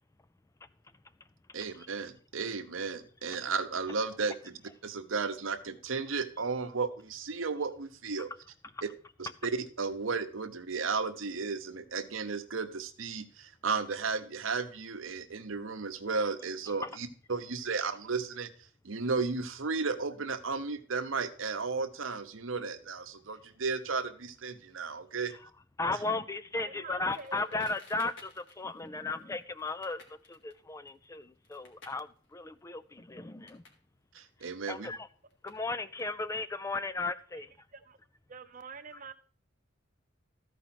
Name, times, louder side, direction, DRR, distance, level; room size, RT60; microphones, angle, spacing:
voice 1, 1.5-8.3 9.2-18.5 18.8-25.3 34.1-34.9, right 4 dB, 75° right, 0.9 m, -34 dB
voice 2, 25.8-33.6 34.7-35.1 35.4-37.5, left 3 dB, 15° left, 0.4 m, -35 dB
voice 3, 26.6-27.6 37.3-37.5 37.7-38.0 38.3-39.1, right 5 dB, 40° right, 0.8 m, -47 dB
Crackle, 27.1-33.8 34.1-36.5, left 3 dB, 65° left, 2.1 m, -57 dB
13.5 x 5.0 x 5.9 m
head